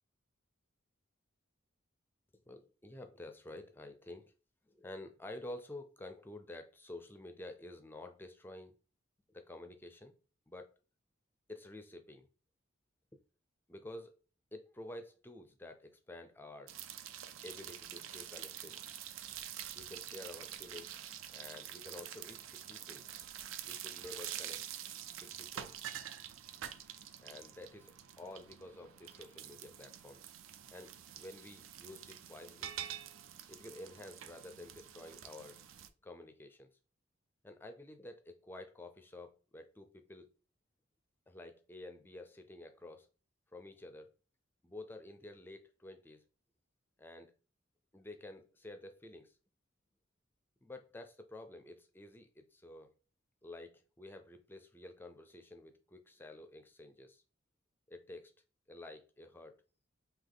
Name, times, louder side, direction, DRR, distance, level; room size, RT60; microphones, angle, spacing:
voice 1, 2.5-4.3 4.7-8.8 9.3-10.2 10.5-10.7 11.5-12.3 13.7-14.2 14.5-16.8 17.4-18.8 19.7-21.0 21.3-23.1 23.6-25.7 27.2-30.2 30.7-32.7 33.5-35.6 36.0-36.7 37.4-40.3 41.3-43.1 43.5-44.1 44.6-46.2 47.0-47.3 47.9-49.4 50.6-52.9 53.4-57.2 57.9-58.3 58.7-59.6, left 1 dB, 10° left, 0.4 m, -50 dB
sound 1, 16.7-35.9, right 10 dB, 75° right, 0.4 m, -47 dB
3.6 x 2.9 x 3.8 m
head